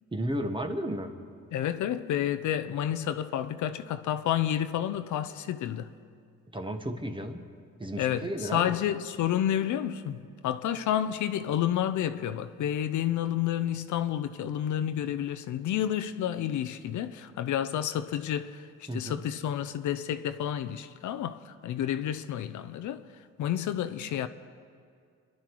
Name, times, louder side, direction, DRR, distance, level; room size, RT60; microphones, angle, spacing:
voice 1, 0.1-1.1 6.5-7.5 7.8-8.8 18.9-19.2, right 1 dB, 15° right, 1.4 m, -33 dB
voice 2, 1.5-5.9 8.0-23.1 23.4-24.3, left 10 dB, 75° left, 0.7 m, -30 dB
26.0 x 11.5 x 4.7 m
cardioid pair, 90°, 30 cm